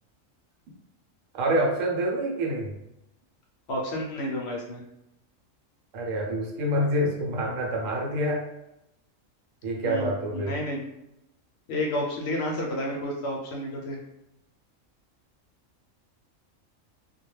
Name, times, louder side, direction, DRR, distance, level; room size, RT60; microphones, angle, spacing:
voice 1, 1.3-2.7 5.9-8.4 9.6-10.5, right 1 dB, 80° right, 0 dB, 1.0 m, -27 dB
voice 2, 3.7-4.8 9.8-10.8 11.7-14.0, left 1 dB, 65° left, -2 dB, 0.8 m, -31 dB
2.3 x 2.2 x 3.1 m, 0.85 s
omnidirectional pair, 1.4 m